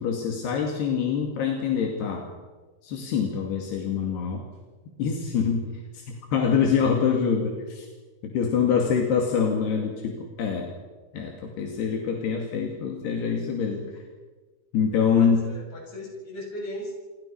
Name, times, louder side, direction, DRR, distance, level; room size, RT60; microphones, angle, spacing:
voice 1, 0.0-2.3 2.8-4.5 5.0-5.7 5.9-6.1 6.3-7.9 8.2-10.7 11.1-13.8 14.7-15.4, left 6 dB, 80° left, 1 dB, 4.4 m, -25 dB
voice 2, 15.2-16.9, left 1 dB, 40° left, 0 dB, 8.3 m, -37 dB
28.0 x 22.5 x 6.0 m, 1.3 s
omnidirectional pair, 4.7 m